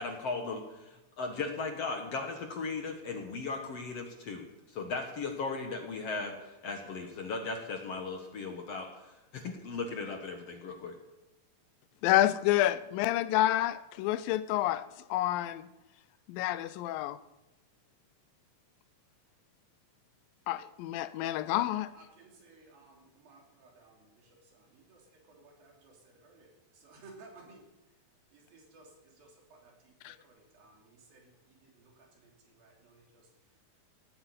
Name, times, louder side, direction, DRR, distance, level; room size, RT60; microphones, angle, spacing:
voice 1, 0.0-11.0, left 4 dB, 55° left, 2.0 m, -37 dB
voice 2, 12.0-15.7 16.3-17.2 20.5-21.9 30.0-30.2, left 14 dB, 80° left, 2.4 m, -29 dB
voice 3, 21.9-27.7 28.3-33.3, right 3 dB, 80° right, 4.8 m, -58 dB
17.0 x 9.0 x 8.2 m
omnidirectional pair, 4.1 m